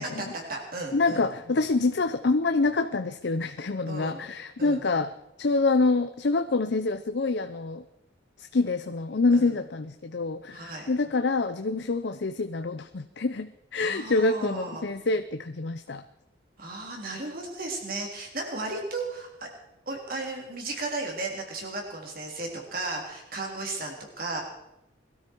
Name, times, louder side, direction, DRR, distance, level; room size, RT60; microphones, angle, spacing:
voice 1, 0.0-1.3 3.9-4.2 4.6-4.8 9.3-9.5 10.5-10.9 13.8-14.9 16.6-19.5 19.8-24.4, right 2 dB, 50° right, 1 dB, 3.5 m, -35 dB
voice 2, 0.9-5.1 5.4-7.8 8.4-16.0, left 3 dB, 65° left, 9 dB, 0.6 m, -26 dB
21.5 x 13.0 x 4.6 m, 0.88 s
head